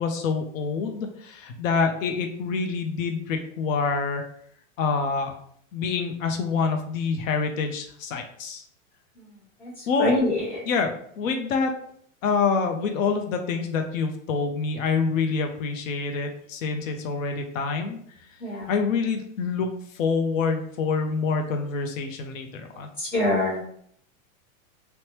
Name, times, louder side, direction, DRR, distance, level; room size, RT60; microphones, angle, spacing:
voice 1, 0.0-4.2 4.8-5.3 5.7-8.6 9.9-10.1 10.6-11.7 12.2-18.0 18.7-19.7 19.9-22.9, left 5 dB, 70° left, 5 dB, 0.6 m, -26 dB
voice 2, 10.0-10.4 18.4-18.7 23.0-23.8, left 1 dB, 5° left, -10 dB, 0.6 m, -24 dB
3.2 x 2.1 x 2.8 m, 0.64 s
supercardioid pair, 175°, 42 cm